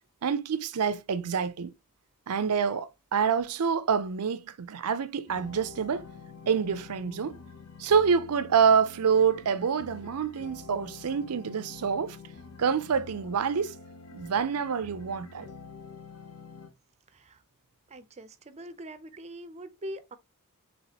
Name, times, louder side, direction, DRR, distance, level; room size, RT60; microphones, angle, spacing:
voice 1, 0.2-1.7 2.3-6.0 6.5-7.3 7.8-12.2 12.6-13.7 14.1-15.5, right 6 dB, 85° right, 0.5 m, -27 dB
sound 1, 5.3-16.7, left 4 dB, 75° left, 0.8 m, -47 dB
voice 2, 17.1-17.4 17.9-20.2, right 1 dB, 30° right, 0.5 m, -43 dB
4.1 x 3.7 x 2.8 m
head